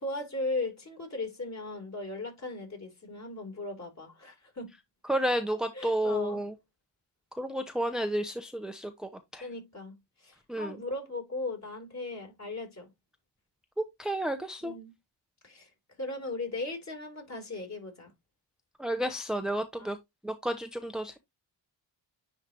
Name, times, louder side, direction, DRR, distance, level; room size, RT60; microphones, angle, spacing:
voice 1, 0.0-4.7 5.7-6.4 9.4-9.9 10.2-12.9 14.6-14.9 15.4-15.7 16.0-18.1 19.8-19.9, left 2 dB, 35° left, 3.9 m, -37 dB
voice 2, 5.0-6.5 7.4-9.5 10.5-10.8 14.0-14.7 18.8-20.0 20.2-21.2, right 1 dB, ahead, 0.7 m, -31 dB
9.9 x 3.4 x 2.9 m
cardioid pair, 80°, 45 cm